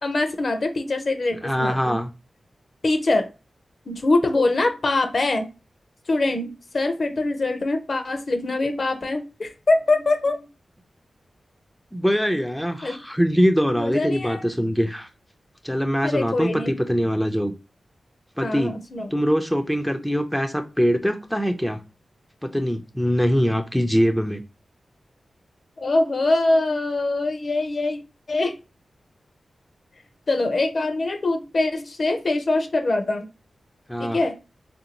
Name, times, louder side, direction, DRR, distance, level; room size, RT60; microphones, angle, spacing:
voice 1, 0.0-2.0 2.8-3.3 3.9-5.4 6.1-10.4 12.8-13.0 13.7-14.4 16.0-16.7 18.4-19.1 25.8-28.0 28.3-28.6 30.3-33.2 34.0-34.4, left 2 dB, 55° left, 7 dB, 0.6 m, -23 dB
voice 2, 1.4-2.1 11.9-15.1 15.6-17.5 18.4-18.7 19.1-21.8 22.4-24.4 33.9-34.2, equal, ahead, 5 dB, 0.4 m, -22 dB
3.8 x 2.6 x 2.8 m, 0.29 s
wide cardioid pair, 85°, 0 cm